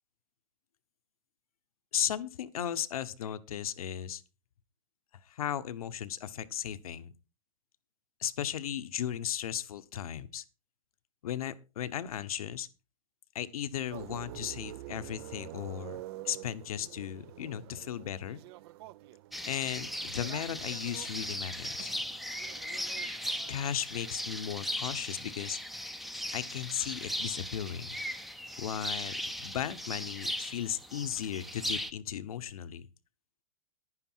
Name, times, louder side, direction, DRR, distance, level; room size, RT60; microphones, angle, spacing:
voice 1, 1.9-4.2 5.3-7.1 8.2-10.4 11.2-12.7 13.3-18.4 19.5-21.9 23.5-25.6 26.3-28.0 28.6-32.9, left 10 dB, 80° left, 12 dB, 1.1 m, -36 dB
sound 1, 13.9-23.7, right 15 dB, 45° right, 0.5 m, -48 dB
sound 2, 19.3-31.9, equal, ahead, 0.6 m, -38 dB
11.0 x 9.9 x 4.6 m, 0.31 s
hypercardioid pair, 145°, 18 cm